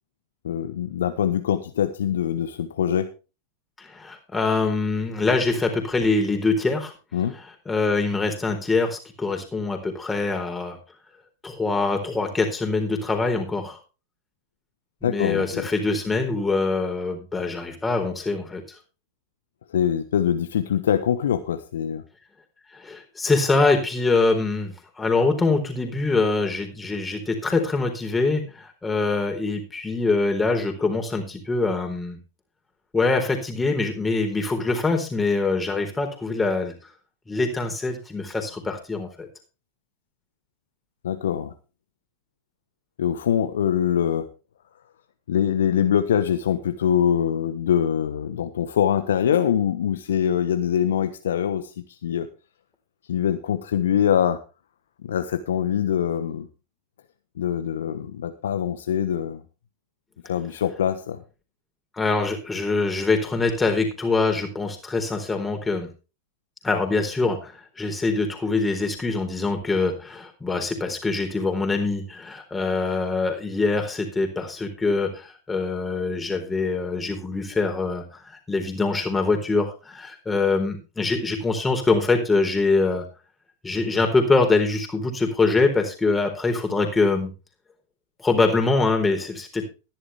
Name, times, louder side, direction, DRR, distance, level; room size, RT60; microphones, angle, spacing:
voice 1, 0.4-3.1 7.1-7.3 15.0-15.6 19.7-22.0 41.0-41.5 43.0-44.3 45.3-51.6 52.0-52.3 53.1-54.4 55.0-56.5 57.4-59.4 60.3-61.2, left 9 dB, 60° left, 10 dB, 1.1 m, -23 dB
voice 2, 3.8-6.9 7.3-10.8 11.4-13.8 15.0-18.6 22.7-32.2 32.9-36.7 37.3-39.3 62.0-65.9 66.6-83.0 83.6-87.3 88.2-89.6, left 3 dB, 10° left, 4 dB, 4.2 m, -24 dB
15.0 x 11.5 x 3.5 m, 0.32 s
figure-of-eight pair, 90°, 0 cm